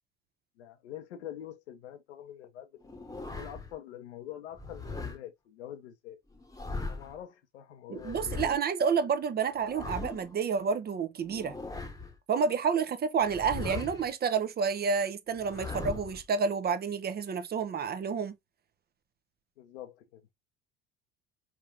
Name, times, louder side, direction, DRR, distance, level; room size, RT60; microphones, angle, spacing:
voice 1, 0.6-2.7 3.3-6.2 6.9-8.4 19.6-20.3, left 11 dB, 65° left, 1.0 m, -45 dB
sound 1, 2.8-3.7 4.6-5.2 6.3-7.2 8.0-8.6 9.5-10.4 11.2-12.2 13.2-14.1 15.3-16.2, left 3 dB, 10° left, 1.1 m, -39 dB
voice 2, 7.9-11.5 12.3-18.3, right 6 dB, 25° right, 0.7 m, -29 dB
4.6 x 3.6 x 2.6 m
figure-of-eight pair, 60°, 36 cm